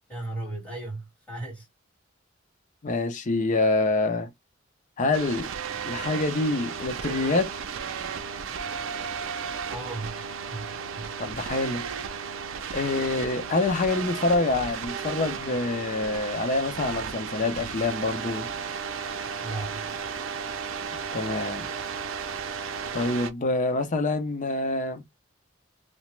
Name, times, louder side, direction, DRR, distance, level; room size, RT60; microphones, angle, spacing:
voice 1, 0.1-1.7 9.7-10.2 10.5-11.1 19.4-19.9, right 2 dB, 5° left, 1.6 m, -36 dB
voice 2, 2.8-4.3 5.0-5.5 5.9-7.5 11.2-11.8 12.7-18.5 21.1-21.7 22.9-25.0, left 2 dB, 40° left, 0.5 m, -26 dB
sound 1, 5.1-23.3, right 6 dB, 85° right, 0.4 m, -34 dB
2.9 x 2.0 x 3.1 m
head